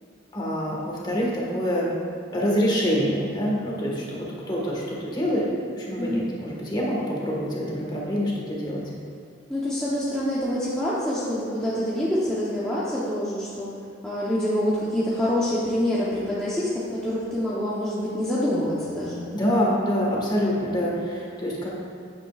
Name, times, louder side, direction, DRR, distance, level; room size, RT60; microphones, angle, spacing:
voice 1, 0.3-1.9 2.3-5.5 5.8-8.8 19.3-21.7, equal, 25° left, -4 dB, 1.6 m, -26 dB
voice 2, 6.0-6.3 9.5-13.7 14.0-19.2, left 1 dB, 5° left, -10 dB, 1.0 m, -26 dB
8.8 x 8.8 x 2.4 m, 2.4 s
head